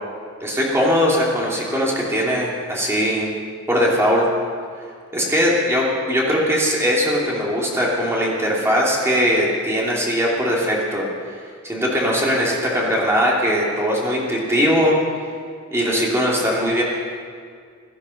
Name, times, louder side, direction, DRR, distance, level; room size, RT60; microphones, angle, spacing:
voice 1, 0.4-3.3 3.7-4.3 5.1-11.0 11.6-15.0 15.7-16.8, equal, 15° right, -4 dB, 2.8 m, -20 dB
16.0 x 11.5 x 5.9 m, 2.1 s
head